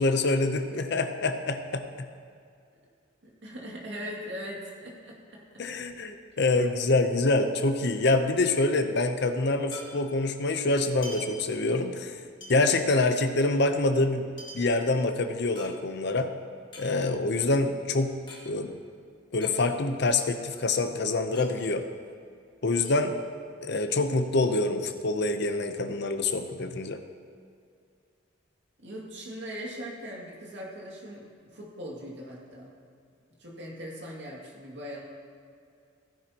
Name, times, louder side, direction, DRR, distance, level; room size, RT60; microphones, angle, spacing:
voice 1, 0.0-2.1 5.6-12.1 12.5-14.2 14.5-16.3 16.8-18.1 18.5-18.8 19.3-21.8 22.6-23.1 23.6-27.0, left 2 dB, 55° left, 7 dB, 0.7 m, -26 dB
voice 2, 3.2-5.6 28.8-32.7 33.4-35.0, equal, 60° right, -3 dB, 2.3 m, -40 dB
sound 1, 6.0-7.4 7.6-7.7 8.0-10.4 10.8-12.0 12.4-16.2 16.6-18.5 18.7-18.8 19.1-20.0 20.4-22.4 22.8-23.7, left 1 dB, 25° left, 2.0 m, -47 dB
15.5 x 10.5 x 2.9 m, 2.3 s
head